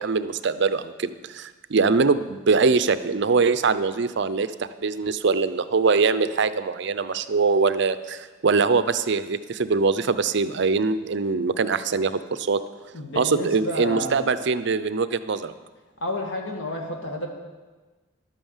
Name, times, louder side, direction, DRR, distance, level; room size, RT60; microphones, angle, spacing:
voice 1, 0.0-4.5 4.8-12.6 13.2-15.5, right 4 dB, 60° right, 13 dB, 0.6 m, -23 dB
voice 2, 12.9-14.2 16.0-17.3, left 1 dB, 65° left, 1 dB, 2.2 m, -30 dB
11.5 x 9.0 x 7.2 m, 1.3 s
head